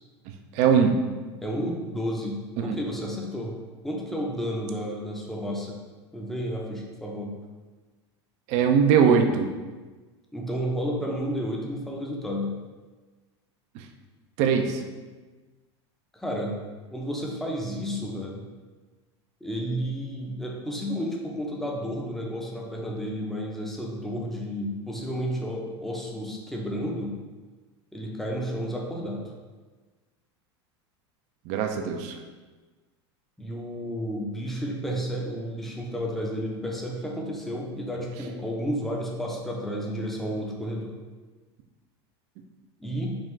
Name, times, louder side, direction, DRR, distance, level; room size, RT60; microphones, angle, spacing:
voice 1, 0.6-0.9 2.6-2.8 8.5-9.5 14.4-14.8 31.5-32.1, right 7 dB, 55° right, 5 dB, 0.4 m, -21 dB
voice 2, 1.4-3.5 3.8-5.8 6.1-7.3 10.3-12.6 16.1-16.6 16.9-18.4 19.4-27.2 27.9-29.3 33.4-40.9 42.8-43.2, equal, ahead, -2 dB, 0.6 m, -31 dB
3.5 x 2.4 x 3.1 m, 1.3 s
hypercardioid pair, 100°, 14 cm